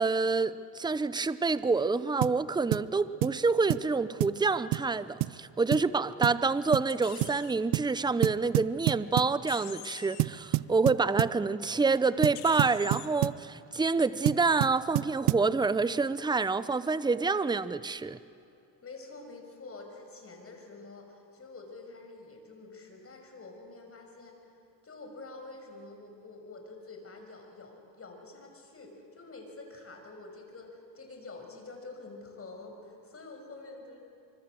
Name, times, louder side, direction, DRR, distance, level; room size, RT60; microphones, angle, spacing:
voice 1, 0.0-18.2, right 4 dB, 10° right, 15 dB, 0.7 m, -27 dB
sound 1, 2.2-2.4 2.7-2.9 3.2-3.4 3.7-3.9 4.2-4.4 4.7-4.9 5.2-5.4 5.7-5.9 6.2-6.4 6.7-6.9 7.2-7.4 7.7-7.9 8.2-9.4 10.2-11.4 12.2-13.4 14.3-15.5, right 20 dB, 85° right, 0.6 m, -29 dB
sound 2, 6.9-7.5 9.5-10.2 12.3-13.1, left 11 dB, 65° left, 2.2 m, -45 dB
voice 2, 18.8-24.4 24.8-34.0, left 3 dB, 30° left, 3 dB, 6.2 m, -47 dB
25.5 x 24.5 x 7.7 m, 2.6 s
cardioid pair, 95°, 42 cm